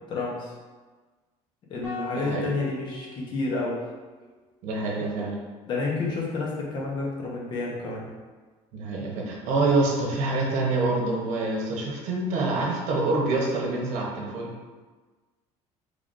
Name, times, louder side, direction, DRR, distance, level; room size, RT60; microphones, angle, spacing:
voice 1, 0.1-0.5 1.7-3.8 5.7-8.1, left 3 dB, 40° left, -3 dB, 0.9 m, -30 dB
sound 1, 1.8-4.2, left 4 dB, 20° left, 1.1 m, -40 dB
voice 2, 2.1-2.5 4.6-5.3 8.7-14.5, right 2 dB, 75° right, -2 dB, 0.9 m, -26 dB
3.8 x 3.4 x 2.5 m, 1.3 s
cardioid pair, 170°, 13 cm